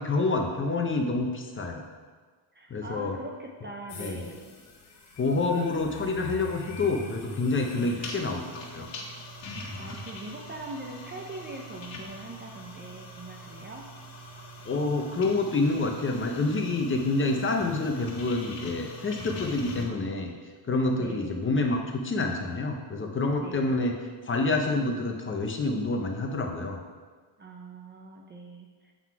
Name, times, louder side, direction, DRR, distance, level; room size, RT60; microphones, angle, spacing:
voice 1, 0.0-1.8 2.7-3.2 4.0-4.2 5.2-8.9 14.6-20.3 20.6-21.8 22.0-23.9 24.3-26.8, left 3 dB, 25° left, 2 dB, 0.6 m, -27 dB
voice 2, 2.5-4.6 7.7-8.0 9.8-13.9 21.0-21.4 23.4-23.8 27.4-28.9, right 2 dB, 25° right, 1 dB, 0.5 m, -42 dB
sound 1, 3.9-19.8, left 1 dB, 70° left, 1.7 m, -42 dB
7.6 x 4.0 x 4.6 m, 1.5 s
cardioid pair, 150°, 46 cm